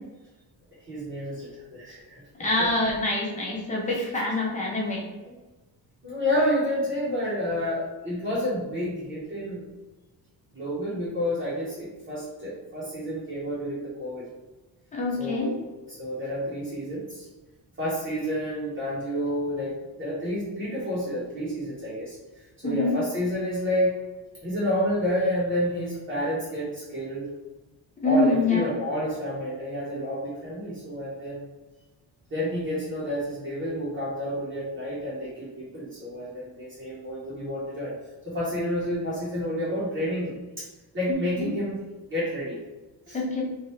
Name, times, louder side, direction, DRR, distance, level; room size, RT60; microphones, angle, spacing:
voice 1, 0.9-2.2 2.6-2.7 5.2-5.3 6.0-9.7 10.5-14.2 15.2-17.3 17.8-22.2 22.6-23.9 24.4-27.3 28.0-31.4 32.3-37.9 38.2-40.7 40.9-41.8 42.0-42.6 43.1-43.2, equal, 30° right, -10 dB, 1.0 m, -29 dB
voice 2, 2.4-5.0 14.9-15.5 22.6-23.0 28.0-28.7 41.4-41.5 43.1-43.4, left 2 dB, 20° left, -4 dB, 0.7 m, -25 dB
3.0 x 2.5 x 3.1 m, 1.2 s
cardioid pair, 170°, 38 cm